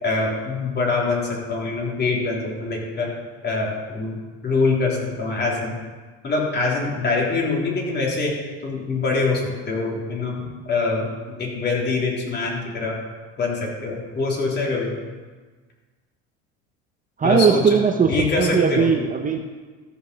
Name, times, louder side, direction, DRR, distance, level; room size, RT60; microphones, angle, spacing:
voice 1, 0.0-3.1 3.4-4.2 4.4-5.8 6.2-8.3 8.6-13.0 13.4-14.9 17.2-17.8 18.1-18.9, left 3 dB, 35° left, -2 dB, 3.7 m, -24 dB
voice 2, 17.2-18.1 18.4-19.4, right 6 dB, 25° right, 4 dB, 0.9 m, -18 dB
14.0 x 5.8 x 7.0 m, 1.4 s
supercardioid pair, 100°, 30 cm